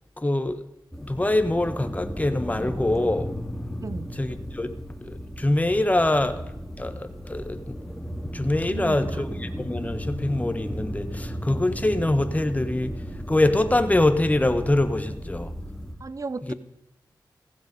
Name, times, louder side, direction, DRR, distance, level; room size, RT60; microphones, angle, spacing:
voice 1, 0.2-0.6 1.0-3.3 4.2-4.7 5.0-6.4 6.8-7.8 8.3-12.9 13.3-15.5 16.4-16.5, left 1 dB, 20° left, 1.3 m, -24 dB
sound 1, 0.9-15.9, equal, 5° left, 2.5 m, -34 dB
voice 2, 3.8-4.1 4.6-4.8 8.7-9.2 16.0-16.5, right 4 dB, 45° right, 0.6 m, -35 dB
15.5 x 15.0 x 5.3 m
cardioid pair, 55°, 8 cm